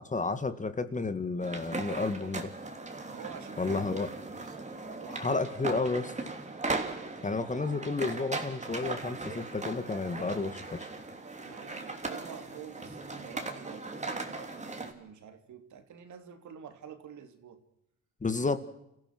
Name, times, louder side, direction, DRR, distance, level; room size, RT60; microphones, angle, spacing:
voice 1, 0.0-2.5 3.6-4.1 5.1-6.1 7.2-10.9 18.2-18.6, left 3 dB, 25° left, 11 dB, 2.0 m, -31 dB
sound 1, 1.4-14.9, right 3 dB, 25° right, 3.3 m, -38 dB
voice 2, 3.1-4.5 5.0-5.5 7.1-7.6 11.4-17.6, right 8 dB, 70° right, 6 dB, 3.3 m, -49 dB
30.0 x 15.5 x 6.2 m, 0.80 s
cardioid pair, 90°, 30 cm